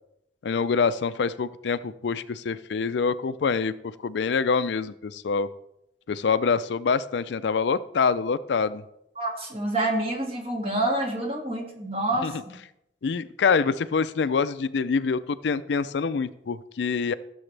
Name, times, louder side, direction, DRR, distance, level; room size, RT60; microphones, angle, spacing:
voice 1, 0.4-5.5 6.1-8.8 12.2-12.3 13.0-17.1, left 5 dB, 75° left, 14 dB, 0.4 m, -25 dB
voice 2, 9.2-12.3, right 1 dB, 35° right, 0 dB, 2.1 m, -27 dB
15.0 x 7.0 x 3.3 m, 0.81 s
head